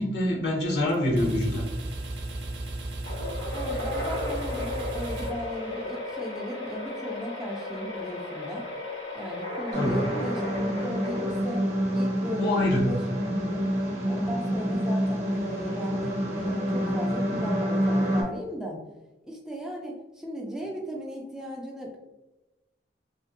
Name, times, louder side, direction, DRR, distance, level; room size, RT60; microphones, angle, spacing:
voice 1, 0.0-1.7 9.7-10.1 12.4-13.0, left 1 dB, 65° left, -1 dB, 0.8 m, -25 dB
sound 1, 0.9-6.1, right 2 dB, 75° right, 0.5 m, -35 dB
sound 2, 3.0-11.8, left 2 dB, 90° left, 1.3 m, -35 dB
voice 2, 3.5-8.7 9.1-11.6 11.9-13.0 14.1-18.8 19.3-22.0, equal, 5° right, -2 dB, 0.3 m, -36 dB
sound 3, 9.7-18.2, equal, 40° right, 0.7 m, -27 dB
2.7 x 2.5 x 2.5 m, 1.0 s
head